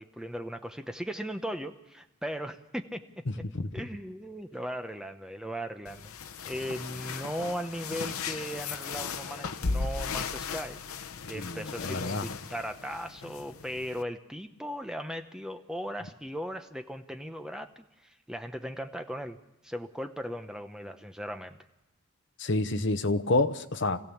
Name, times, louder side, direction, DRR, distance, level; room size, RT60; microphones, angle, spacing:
voice 1, 0.0-3.0 3.7-6.1 6.4-10.8 11.3-19.4 19.6-21.6, equal, 5° right, 6 dB, 0.8 m, -37 dB
sound 1, 5.9-14.0, left 4 dB, 75° left, 0.8 m, -37 dB
voice 2, 11.4-12.3 22.4-24.0, left 2 dB, 55° left, 10 dB, 0.9 m, -28 dB
26.0 x 16.0 x 7.2 m, 0.98 s
head